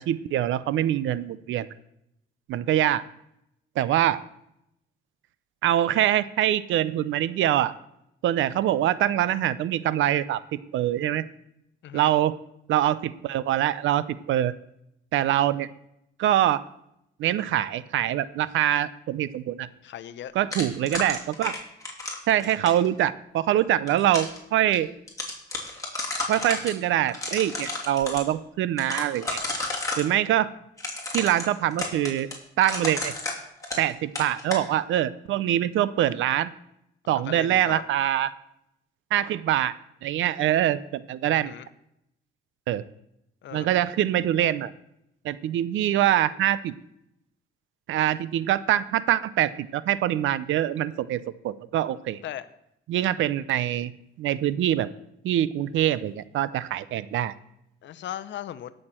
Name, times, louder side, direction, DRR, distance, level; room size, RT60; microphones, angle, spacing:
voice 1, 0.0-1.7 2.5-3.0 3.8-4.2 5.6-7.7 8.2-10.4 10.7-11.2 11.9-12.3 12.7-14.5 15.1-15.7 16.2-16.6 17.2-19.7 20.3-21.6 22.3-24.9 26.3-29.4 30.0-30.5 31.1-32.3 32.6-33.1 33.8-36.5 37.1-38.3 39.1-39.7 40.0-41.5 42.7-42.8 43.5-44.7 45.2-46.7 47.9-52.2 52.9-53.9 54.2-54.9 55.2-57.3, right 12 dB, 80° right, 17 dB, 0.6 m, -24 dB
voice 2, 19.8-20.3 37.1-37.8 41.3-41.7 43.4-43.8 52.2-52.5 57.8-58.7, left 11 dB, 65° left, 13 dB, 0.7 m, -38 dB
sound 1, 20.5-22.9 23.6-24.4 24.7-24.8 25.1-26.7 27.1-28.2 28.8-30.1 30.8-33.9 34.2-34.6, left 2 dB, 15° left, 3.0 m, -32 dB
17.5 x 6.6 x 4.4 m, 0.80 s
cardioid pair, 90°, 20 cm